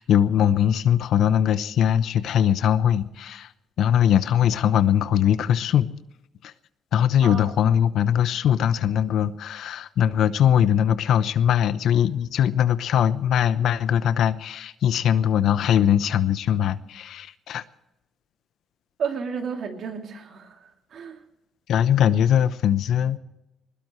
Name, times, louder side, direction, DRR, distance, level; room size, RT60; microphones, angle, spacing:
voice 1, 0.0-3.5 3.8-5.9 6.4-6.5 6.9-17.6 21.7-23.2, left 9 dB, 75° left, 14 dB, 0.8 m, -21 dB
voice 2, 7.2-7.7 19.0-21.2, right 6 dB, 65° right, 3 dB, 2.8 m, -32 dB
21.5 x 20.0 x 3.2 m, 0.93 s
cardioid pair, 90°, 0 cm